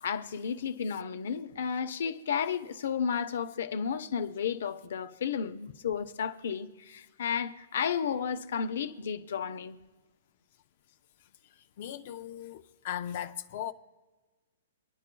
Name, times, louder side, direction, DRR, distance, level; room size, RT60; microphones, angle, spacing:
voice 1, 0.0-9.8, left 7 dB, 70° left, 0.8 m, -32 dB
voice 2, 11.8-13.7, left 10 dB, 45° left, 0.5 m, -38 dB
25.0 x 10.0 x 2.3 m
hypercardioid pair, 160°, 0 cm